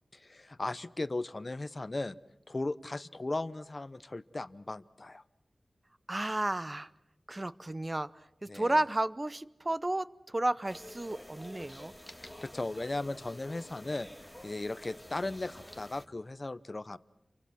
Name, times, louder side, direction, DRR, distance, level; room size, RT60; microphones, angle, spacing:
voice 1, 0.1-2.1 2.5-5.2 8.5-8.8 12.2-14.1 14.4-17.0, left 2 dB, 40° left, 15 dB, 0.9 m, -37 dB
voice 2, 6.1-6.9 7.3-8.1 8.4-11.9, right 1 dB, 25° right, 16 dB, 0.8 m, -32 dB
sound 1, 10.6-16.1, left 1 dB, 5° left, 1.6 m, -49 dB
29.5 x 24.5 x 6.1 m, 0.86 s
wide cardioid pair, 75°, 0 cm